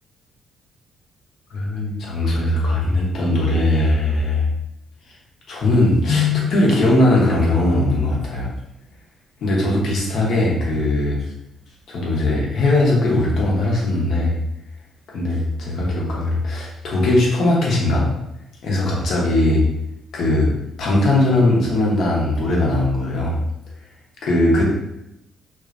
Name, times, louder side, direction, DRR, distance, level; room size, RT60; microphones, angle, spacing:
voice 1, 1.5-4.4 5.5-8.5 9.4-11.2 11.9-14.4 15.1-18.1 18.6-19.7 20.1-20.5 20.8-23.4 24.2-24.6, left 2 dB, 70° left, -3 dB, 0.7 m, -19 dB
2.4 x 2.1 x 2.4 m, 0.84 s
cardioid pair, 90°, 0 cm